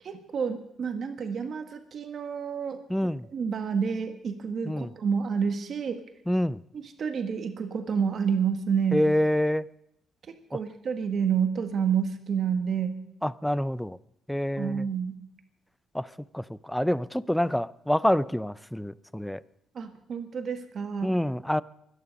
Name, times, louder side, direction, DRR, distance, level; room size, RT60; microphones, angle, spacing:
voice 1, 0.0-2.8 3.3-6.0 6.7-9.0 10.3-13.0 14.6-15.2 19.7-21.1, right 6 dB, 55° right, 1.7 m, -29 dB
voice 2, 2.9-3.2 4.6-4.9 6.3-6.6 8.9-9.7 10.5-10.6 13.2-14.0 14.3-14.9 15.9-19.4 21.0-21.6, left 1 dB, 5° left, 0.5 m, -27 dB
24.0 x 10.0 x 5.4 m
cardioid pair, 90°, 0 cm